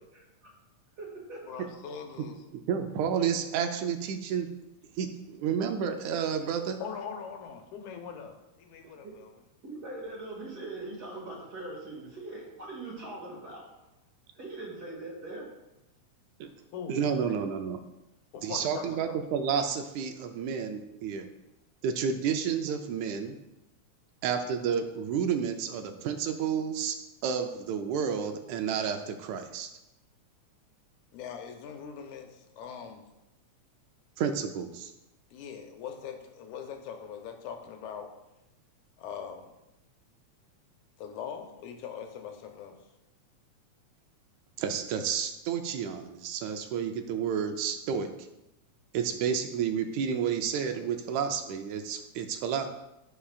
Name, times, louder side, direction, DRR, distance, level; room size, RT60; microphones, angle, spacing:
voice 1, 0.1-0.5 1.0-1.5 9.0-9.2 9.6-13.7 14.3-15.5, right 2 dB, 35° right, -3 dB, 2.5 m, -41 dB
voice 2, 1.4-2.4 6.8-9.3 16.7-17.4 18.3-19.2 31.1-33.1 35.3-38.1 39.0-39.5 41.0-42.8, left 7 dB, 85° left, 4 dB, 2.3 m, -41 dB
voice 3, 2.7-4.5 5.0-6.8 16.4-16.5 16.9-17.8 18.4-21.3 21.8-23.4 24.2-27.0 27.2-29.7 34.2-34.9 44.6-48.1 48.9-52.7, right 7 dB, 80° right, 6 dB, 2.0 m, -30 dB
16.5 x 5.7 x 2.4 m, 0.95 s
omnidirectional pair, 3.4 m